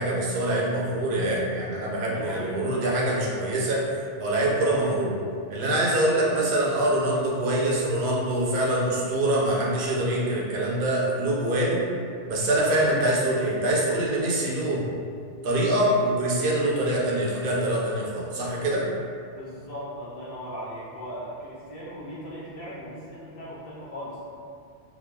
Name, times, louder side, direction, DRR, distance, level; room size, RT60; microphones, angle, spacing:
voice 1, 0.0-3.9 4.2-5.2 5.5-11.8 12.3-14.9 15.4-18.9, right 1 dB, 60° right, -4 dB, 0.7 m, -24 dB
voice 2, 2.0-2.6 19.3-24.2, equal, 60° left, -8 dB, 0.8 m, -38 dB
3.0 x 2.3 x 2.2 m, 2.3 s
omnidirectional pair, 1.2 m